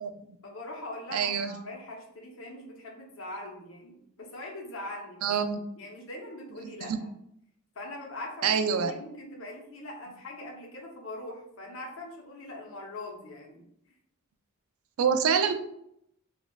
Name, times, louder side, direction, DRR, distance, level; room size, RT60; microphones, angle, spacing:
voice 1, 0.4-5.3 5.8-7.1 7.7-13.6, left 1 dB, 65° left, 0 dB, 0.8 m, -42 dB
voice 2, 1.1-1.5 5.2-5.6 6.8-7.0 8.4-8.9 15.0-15.5, right 6 dB, 75° right, 8 dB, 0.4 m, -25 dB
4.2 x 2.3 x 2.3 m, 0.73 s
head